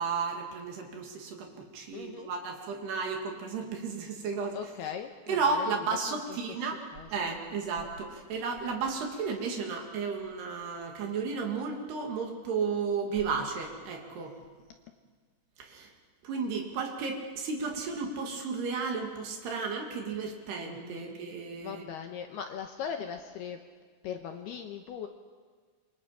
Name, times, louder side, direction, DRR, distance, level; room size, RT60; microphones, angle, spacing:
voice 1, 0.0-4.6 5.3-6.8 7.1-14.3 15.6-15.9 16.2-21.9, right 5 dB, 60° right, 2 dB, 4.1 m, -33 dB
voice 2, 1.9-2.3 4.5-6.4 6.6-7.3 20.6-21.2 21.5-23.6 24.0-25.1, left 8 dB, 75° left, 5 dB, 2.6 m, -40 dB
28.0 x 24.5 x 5.8 m, 1.5 s
omnidirectional pair, 5.5 m